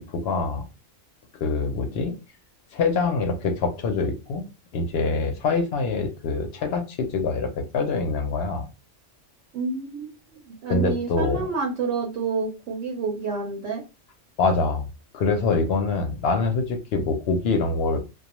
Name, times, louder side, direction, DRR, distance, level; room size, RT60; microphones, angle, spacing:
voice 1, 0.2-0.6 1.4-2.1 2.7-4.5 4.7-8.7 10.7-11.5 14.4-14.9 15.1-18.0, left 3 dB, 60° left, 5 dB, 0.7 m, -24 dB
voice 2, 9.5-10.2 10.5-13.8, right 4 dB, 75° right, 0 dB, 0.9 m, -29 dB
2.3 x 2.2 x 2.9 m, 0.28 s
omnidirectional pair, 1.3 m